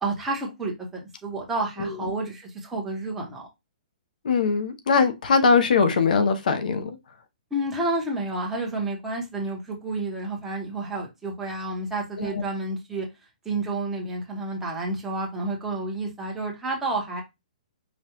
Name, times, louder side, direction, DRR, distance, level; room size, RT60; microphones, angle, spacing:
voice 1, 0.0-3.5 7.5-13.1 13.4-17.2, right 2 dB, 5° right, 1.0 m, -30 dB
voice 2, 4.2-7.0 12.2-12.4, left 5 dB, 70° left, 0.7 m, -21 dB
5.1 x 2.4 x 2.9 m
hypercardioid pair, 155°, 5 cm